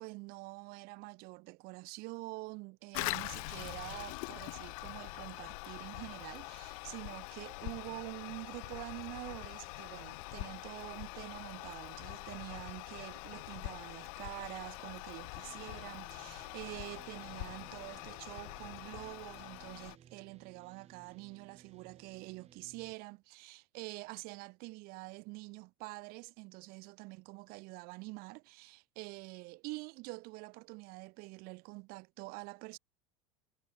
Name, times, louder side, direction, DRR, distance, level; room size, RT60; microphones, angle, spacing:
voice 1, 0.0-32.8, right 25 dB, 55° right, 0.5 m, -46 dB
Toilet flush, 2.9-20.0, left 29 dB, 70° left, 1.0 m, -44 dB
sound 1, 15.4-23.0, right 9 dB, 35° right, 7.6 m, -61 dB
supercardioid pair, 105°, 19 cm